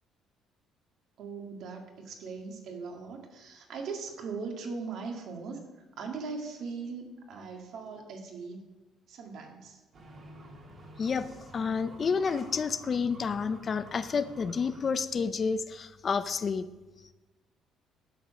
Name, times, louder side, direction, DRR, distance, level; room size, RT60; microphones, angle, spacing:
voice 1, 1.2-5.6 6.0-8.6 9.1-9.8, right 4 dB, 60° right, 2 dB, 2.0 m, -39 dB
sound 1, 9.9-14.9, right 1 dB, 40° right, 2.0 m, -50 dB
voice 2, 11.5-16.7, left 5 dB, 30° left, 12 dB, 0.4 m, -30 dB
11.0 x 7.2 x 6.4 m, 1.1 s
cardioid pair, 155°, 0 cm